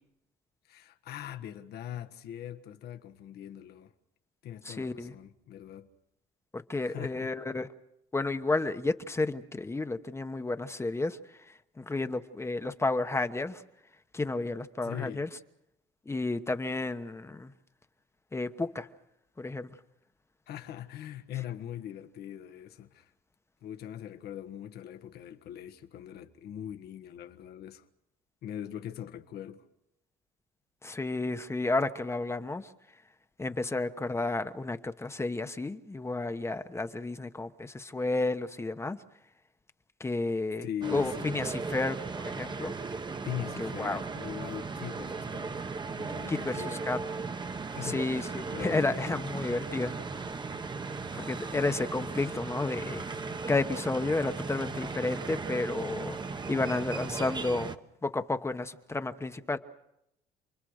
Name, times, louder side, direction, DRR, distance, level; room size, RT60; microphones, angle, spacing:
voice 1, 0.6-3.9 4.4-5.9 6.8-7.3 14.8-15.3 20.5-23.1 23.6-27.8 28.4-29.6 40.6-41.4 42.8-45.6 46.0-46.9 47.7-49.2, left 11 dB, 70° left, 1.5 m, -41 dB
voice 2, 4.6-5.1 6.5-7.7 8.1-13.6 14.1-15.3 16.1-17.5 18.3-18.9 19.4-19.8 30.8-32.7 33.4-39.0 40.0-42.0 42.2-42.7 43.6-44.0 46.3-47.0 47.8-49.9 51.1-53.0 53.5-57.7 58.0-59.6, left 2 dB, 15° left, 1.1 m, -32 dB
sound 1, 40.8-57.8, right 4 dB, 25° right, 1.2 m, -37 dB
29.0 x 22.0 x 6.6 m
cardioid pair, 110°, 17 cm